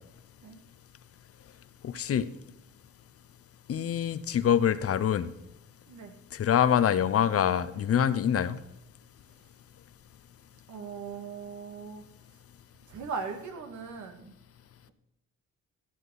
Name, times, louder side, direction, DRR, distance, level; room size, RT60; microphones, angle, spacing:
voice 1, 1.8-2.3 3.7-5.3 6.3-8.6, left 9 dB, 50° left, 14 dB, 0.8 m, -25 dB
voice 2, 10.7-12.0 12.9-14.3, right 5 dB, 70° right, 6 dB, 2.0 m, -39 dB
14.0 x 7.5 x 4.0 m, 0.89 s
cardioid pair, 90°, 30 cm